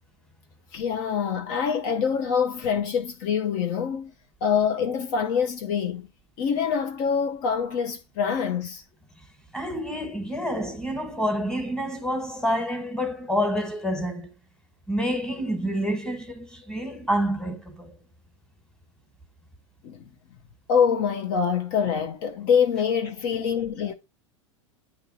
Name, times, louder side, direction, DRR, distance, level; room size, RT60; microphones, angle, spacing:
voice 1, 0.7-4.1 4.4-6.1 6.4-8.8 19.8-20.0 20.7-23.9, left 7 dB, 50° left, 0.7 m, -25 dB
voice 2, 9.5-14.3 14.9-17.9, equal, 5° left, 1.4 m, -28 dB
8.8 x 2.9 x 4.1 m
hypercardioid pair, 95°, 16 cm